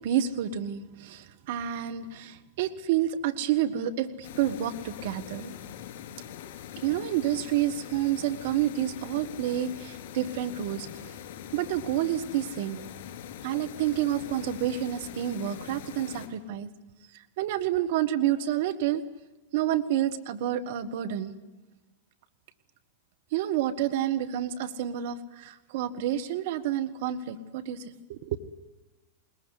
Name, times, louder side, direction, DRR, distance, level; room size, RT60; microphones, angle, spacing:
voice 1, 0.0-5.6 6.8-11.2 11.5-12.8 13.4-16.7 17.1-19.0 19.5-21.3 23.3-28.4, right 11 dB, 55° right, 8 dB, 1.5 m, -29 dB
sound 1, 4.2-16.3, left 10 dB, 55° left, 4.8 m, -43 dB
21.5 x 20.5 x 9.8 m, 1.1 s
figure-of-eight pair, 95°, 0 cm